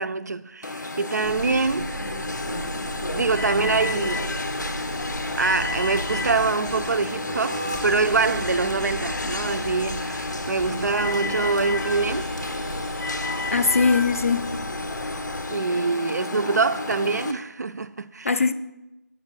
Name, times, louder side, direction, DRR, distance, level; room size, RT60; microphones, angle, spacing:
voice 1, 0.0-1.9 2.5-2.6 3.1-4.4 5.4-12.3 15.5-18.4, right 4 dB, 70° right, 0.4 m, -25 dB
Alarm, 0.6-17.3, left 3 dB, 90° left, 0.7 m, -31 dB
sound 1, 1.2-15.5, right 2 dB, 10° right, 0.5 m, -36 dB
voice 2, 13.5-14.5 18.2-18.5, left 4 dB, 50° left, 0.4 m, -20 dB
8.0 x 6.3 x 3.8 m
figure-of-eight pair, 170°, 10 cm